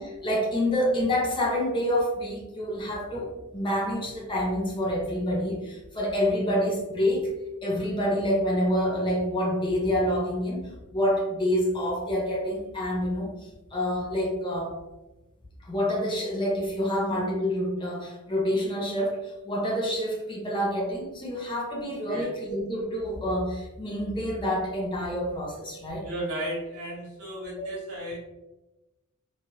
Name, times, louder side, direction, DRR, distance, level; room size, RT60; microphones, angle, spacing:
voice 1, 0.0-7.3 7.6-13.3 13.7-14.8 15.6-26.1 27.6-27.7, equal, 20° left, -2 dB, 0.7 m, -27 dB
voice 2, 26.0-28.2, right 1 dB, 75° right, -3 dB, 1.2 m, -34 dB
3.0 x 2.5 x 3.0 m, 1.0 s
head